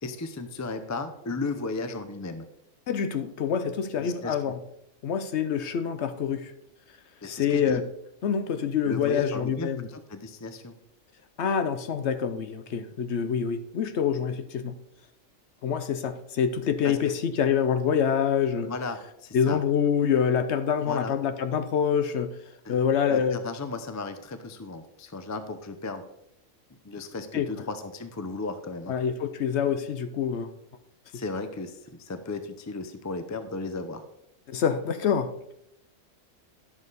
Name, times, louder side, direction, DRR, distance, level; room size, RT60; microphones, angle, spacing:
voice 1, 0.0-2.4 4.0-4.5 7.2-7.8 8.8-10.7 16.8-17.1 18.7-19.6 20.8-21.2 22.6-22.8 23.1-26.0 26.8-29.0 31.1-34.0, left 3 dB, 25° left, 0.3 m, -35 dB
voice 2, 2.9-4.6 5.0-6.5 7.2-7.8 8.2-9.8 11.4-14.7 15.6-18.7 19.3-22.3 22.7-23.4 27.3-27.5 28.9-30.5 31.1-31.2 34.5-35.5, left 7 dB, 60° left, 0.9 m, -26 dB
11.0 x 7.2 x 4.0 m
omnidirectional pair, 1.4 m